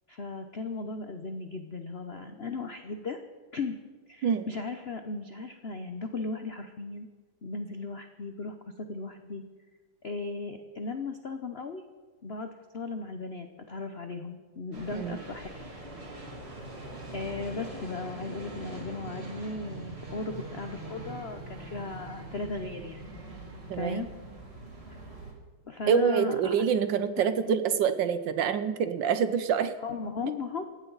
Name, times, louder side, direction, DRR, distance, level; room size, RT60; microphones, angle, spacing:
voice 1, 0.1-3.2 3.5-3.8 4.1-7.1 7.4-9.4 10.0-11.8 12.2-15.5 17.1-23.2 23.7-24.1 25.7-26.6 27.5-27.6 29.8-30.6, left 3 dB, 60° left, 7 dB, 0.6 m, -36 dB
sound 1, 14.7-25.3, right 2 dB, 30° right, 2.8 m, -42 dB
voice 2, 23.7-24.0 25.9-29.7, right 7 dB, 65° right, 11 dB, 1.4 m, -26 dB
19.5 x 16.0 x 4.0 m, 1.3 s
omnidirectional pair, 2.3 m